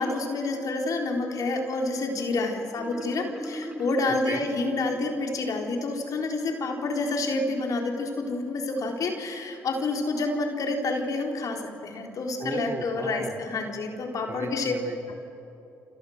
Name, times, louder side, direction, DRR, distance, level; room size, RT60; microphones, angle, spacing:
voice 1, 0.0-14.7 15.1-15.2, left 3 dB, 60° left, 2 dB, 4.0 m, -28 dB
Marimba xylophone, 2.8-5.5, right 1 dB, 15° right, 3.0 m, -39 dB
voice 2, 12.4-13.4 14.3-15.1, right 3 dB, 35° right, 4 dB, 2.8 m, -36 dB
29.5 x 26.5 x 6.6 m, 2.9 s
supercardioid pair, 55°, 7 cm